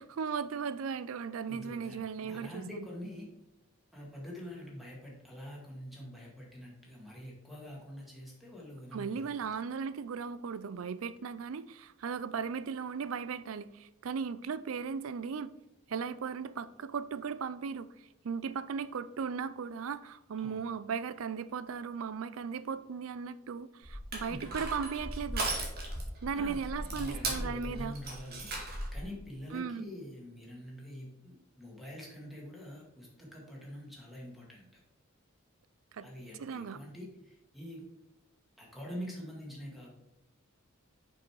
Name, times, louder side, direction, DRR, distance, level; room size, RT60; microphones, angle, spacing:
voice 1, 0.0-2.9 8.9-15.5 15.9-17.9 18.2-25.5 26.2-28.0 29.5-29.9 35.9-36.1 36.4-36.8, right 6 dB, 70° right, 15 dB, 0.4 m, -37 dB
voice 2, 1.5-3.3 3.9-9.6 20.4-20.7 24.3-24.5 26.3-28.5 28.9-34.7 36.0-37.9 38.6-39.9, equal, ahead, -3 dB, 2.0 m, -45 dB
Crushing, 23.8-29.0, right 2 dB, 50° right, 1.9 m, -37 dB
6.4 x 5.4 x 4.6 m, 0.90 s
head